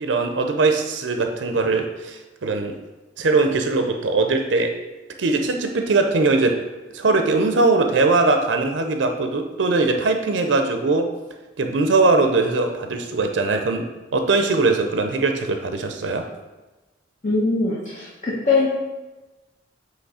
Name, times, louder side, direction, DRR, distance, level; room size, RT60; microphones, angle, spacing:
voice 1, 0.0-2.8 3.2-4.8 5.2-6.6 6.9-11.1 11.6-13.9 14.1-16.3, right 3 dB, 75° right, 5 dB, 0.5 m, -20 dB
voice 2, 17.2-18.7, left 3 dB, 40° left, -6 dB, 1.1 m, -21 dB
7.9 x 3.1 x 4.8 m, 1.1 s
head